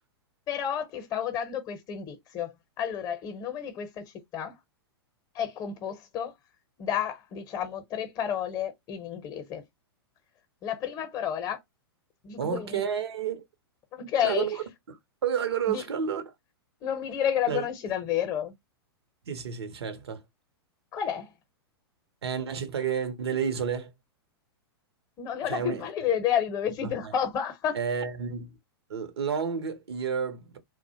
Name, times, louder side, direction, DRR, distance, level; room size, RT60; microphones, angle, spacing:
voice 1, 0.5-4.6 5.3-6.3 6.8-9.6 10.6-11.6 12.2-12.8 13.9-14.5 15.7-15.8 16.8-18.5 20.9-21.3 25.2-27.8, left 9 dB, 30° left, 0.7 m, -31 dB
voice 2, 12.4-13.5 14.2-16.3 17.5-17.6 19.3-20.2 22.2-23.9 25.4-25.8 26.8-27.1 27.7-28.6 28.9-30.6, right 7 dB, 75° right, 0.6 m, -31 dB
2.3 x 2.1 x 2.7 m
hypercardioid pair, 110°, 13 cm